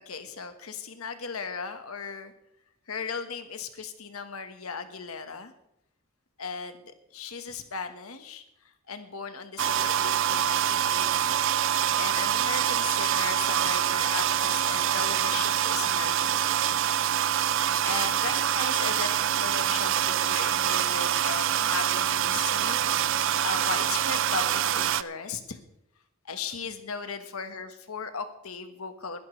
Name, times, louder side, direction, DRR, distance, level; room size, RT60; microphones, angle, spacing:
voice 1, 0.1-2.3 2.9-5.5 6.4-8.4 8.9-11.4 12.0-16.5 17.6-25.6 26.2-29.2, left 5 dB, 85° left, 8 dB, 1.4 m, -37 dB
sound 1, 9.6-25.0, right 10 dB, 60° right, 0.4 m, -25 dB
21.5 x 11.5 x 3.3 m, 0.79 s
head